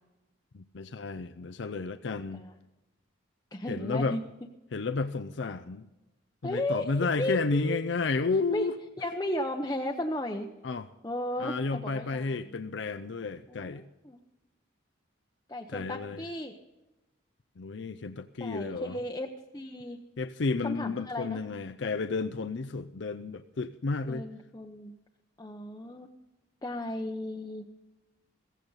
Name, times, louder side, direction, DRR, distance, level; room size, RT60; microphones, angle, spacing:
voice 1, 0.5-2.4 3.7-4.2 4.7-5.9 6.4-8.7 10.6-10.9 11.4-13.8 15.7-16.2 17.6-19.0 20.2-24.3, left 4 dB, 65° left, 10 dB, 0.5 m, -32 dB
voice 2, 3.5-4.2 6.4-7.9 8.5-8.7 9.0-10.5 11.0-12.6 13.5-14.2 15.5-16.6 18.4-19.3 19.5-20.0 20.6-21.4 24.1-24.9 25.4-26.1 26.6-27.6, left 1 dB, 20° left, 1 dB, 0.8 m, -35 dB
16.0 x 15.5 x 4.0 m, 1.0 s
head